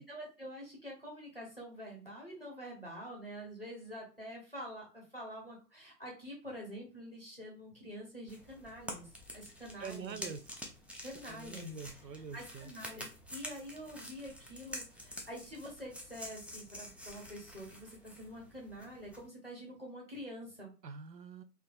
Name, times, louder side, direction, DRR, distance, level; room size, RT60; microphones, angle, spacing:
voice 1, 0.0-10.3 11.0-11.7 12.3-20.7, equal, 35° left, -1 dB, 0.7 m, -47 dB
sound 1, 8.3-19.3, equal, 5° right, 0.3 m, -48 dB
voice 2, 9.8-10.4 11.1-12.7 20.8-21.4, right 6 dB, 90° right, 10 dB, 0.5 m, -45 dB
2.3 x 2.3 x 2.4 m, 0.35 s
figure-of-eight pair, 170°, 49 cm